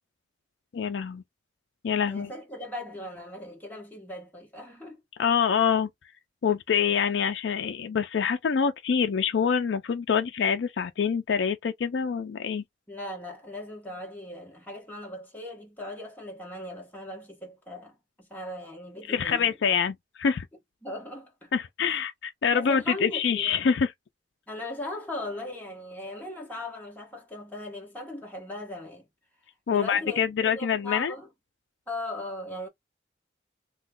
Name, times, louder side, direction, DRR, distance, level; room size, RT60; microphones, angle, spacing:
voice 1, 0.7-1.2 1.8-2.3 5.2-5.9 6.4-12.6 19.1-20.5 21.5-23.9 29.7-31.1, left 7 dB, 70° left, 0.4 m, -25 dB
voice 2, 2.1-5.0 12.9-19.6 20.8-21.5 21.8-22.0 22.5-23.7 24.5-29.1 29.7-31.3 31.9-32.7, left 1 dB, 10° left, 1.4 m, -38 dB
3.0 x 2.2 x 3.6 m
head